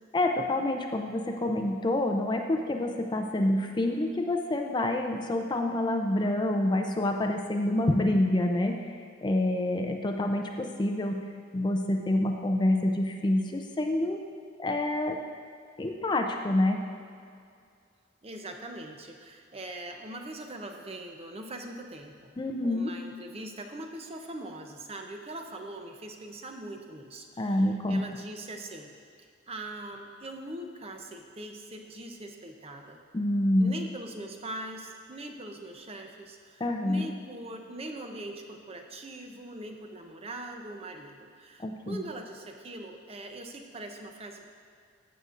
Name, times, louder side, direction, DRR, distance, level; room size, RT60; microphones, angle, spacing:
voice 1, 0.1-8.8 9.2-11.2 11.5-14.2 14.6-15.2 15.8-16.8 22.4-22.9 27.4-28.0 33.1-33.7 36.6-37.1 41.6-42.0, left 1 dB, 25° left, 3 dB, 0.5 m, -27 dB
voice 2, 18.2-22.3 22.6-28.9 29.2-33.0 33.6-44.5, right 1 dB, 30° right, 3 dB, 0.6 m, -42 dB
14.5 x 6.8 x 2.5 m, 2.3 s
head